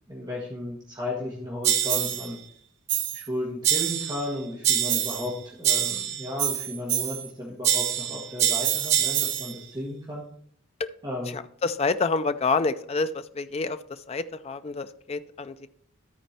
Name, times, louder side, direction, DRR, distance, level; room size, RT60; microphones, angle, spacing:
voice 1, 0.1-2.4 3.1-10.2 11.0-11.4, left 1 dB, 20° right, -4 dB, 1.4 m, -34 dB
sound 1, 1.6-2.3 2.9-3.3 3.6-4.3 4.6-5.3 5.6-7.3 7.6-9.5, right 10 dB, 55° right, 0.7 m, -25 dB
voice 2, 11.3-15.5, left 4 dB, 30° left, 11 dB, 0.3 m, -28 dB
13.0 x 4.4 x 4.3 m, 0.64 s
head